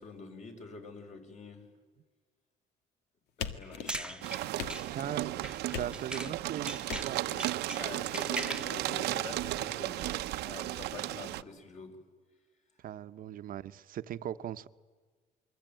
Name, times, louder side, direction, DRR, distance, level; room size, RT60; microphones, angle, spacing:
voice 1, 0.0-1.7 3.4-4.2 7.8-11.9, left 4 dB, 45° left, 5.9 m, -46 dB
sound 1, 3.4-4.2 4.6-5.2 5.7-6.4 6.9-7.4, left 7 dB, 85° left, 1.9 m, -40 dB
sound 2, 3.6-6.4 6.7-8.8, right 1 dB, 5° right, 1.2 m, -40 dB
sound 3, 4.2-11.4, right 15 dB, 85° right, 0.9 m, -35 dB
voice 2, 4.9-5.3 5.8-7.3 12.8-14.7, right 11 dB, 55° right, 0.9 m, -39 dB
28.5 x 22.0 x 9.1 m
cardioid pair, 110°, 17 cm